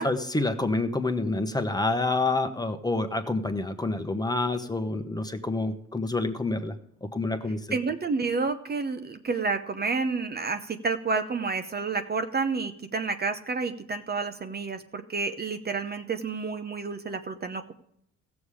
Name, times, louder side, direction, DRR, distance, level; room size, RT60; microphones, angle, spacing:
voice 1, 0.0-6.7 7.1-7.6, left 2 dB, 15° left, 8 dB, 1.0 m, -28 dB
voice 2, 7.7-17.7, right 4 dB, 35° right, 8 dB, 0.8 m, -30 dB
15.5 x 7.1 x 4.9 m, 0.73 s
cardioid pair, 90°, 30 cm